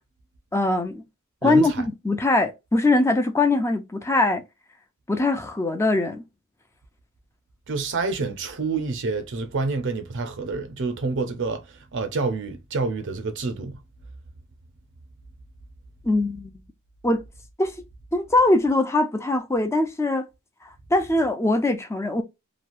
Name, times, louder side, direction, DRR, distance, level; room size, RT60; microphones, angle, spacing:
voice 1, 0.5-1.0 1.4-4.4 5.1-6.2 16.0-16.5 17.0-17.2 17.6-17.7 18.1-20.3 20.9-22.2, left 2 dB, 15° left, 0.4 m, -22 dB
voice 2, 1.4-1.8 7.7-11.7 11.9-13.8, right 3 dB, 55° right, 0.6 m, -28 dB
3.0 x 2.3 x 2.5 m
head